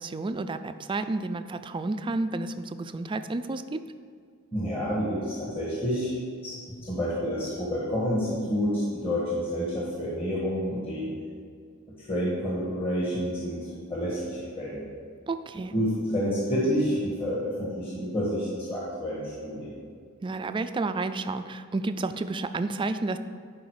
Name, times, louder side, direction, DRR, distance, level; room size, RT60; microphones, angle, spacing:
voice 1, 0.0-3.8 15.3-15.7 20.2-23.2, right 3 dB, 20° right, 10 dB, 0.3 m, -31 dB
voice 2, 4.5-6.1 6.4-11.1 12.1-14.8 15.7-19.7, equal, 25° left, -6 dB, 1.5 m, -29 dB
11.0 x 4.9 x 4.8 m, 2.1 s
head